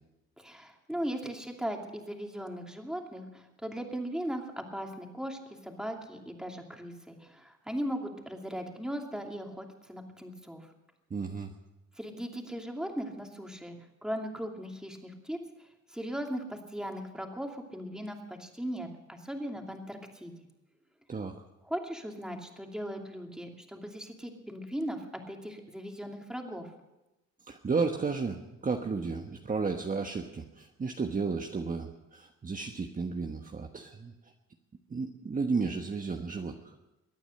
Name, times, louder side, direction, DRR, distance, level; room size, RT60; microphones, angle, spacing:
voice 1, 0.4-10.7 12.0-13.8 14.0-15.4 15.9-20.3 21.6-26.7, equal, ahead, 2 dB, 2.6 m, -38 dB
voice 2, 11.1-11.5 21.1-21.3 27.5-34.1 34.9-36.7, right 4 dB, 30° right, 3 dB, 1.2 m, -33 dB
23.0 x 9.1 x 6.6 m, 1.0 s
cardioid pair, 90°, 30 cm